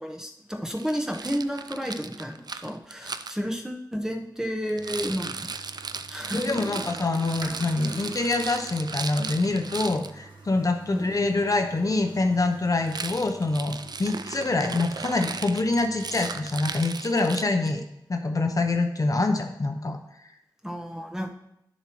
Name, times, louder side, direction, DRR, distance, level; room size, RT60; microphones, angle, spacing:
voice 1, 0.0-5.5 6.1-6.6 10.9-11.1 20.6-21.3, equal, 5° right, 2 dB, 1.0 m, -31 dB
Rattle, 0.8-3.3 4.7-10.1 12.8-17.8, right 4 dB, 60° right, 0.4 m, -37 dB
Toilet flush, 4.8-16.7, right 2 dB, 85° right, 1.4 m, -46 dB
voice 2, 6.3-17.8 18.1-20.0, left 2 dB, 45° left, 5 dB, 0.8 m, -25 dB
11.0 x 6.9 x 3.1 m, 0.82 s
wide cardioid pair, 85°, 8 cm